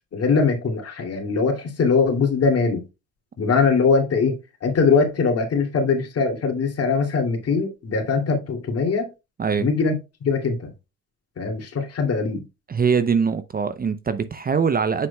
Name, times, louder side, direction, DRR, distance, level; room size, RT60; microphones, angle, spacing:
voice 1, 0.0-2.8 3.4-9.1 9.6-9.9 10.2-10.6 11.4-12.4, left 4 dB, 45° left, 2.7 m, -21 dB
voice 2, 12.7-15.1, right 6 dB, 25° right, 0.7 m, -22 dB
7.7 x 6.1 x 2.3 m
supercardioid pair, 70°, 33 cm